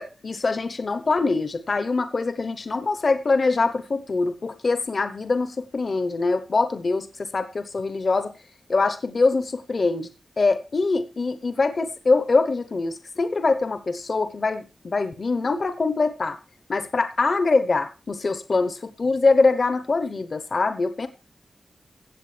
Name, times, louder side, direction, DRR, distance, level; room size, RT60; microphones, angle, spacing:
voice 1, 0.0-8.3 8.7-10.1 10.4-16.4 16.7-21.1, left 3 dB, 45° left, 12 dB, 0.9 m, -23 dB
16.5 x 7.7 x 3.3 m, 0.32 s
wide cardioid pair, 145°, 0 cm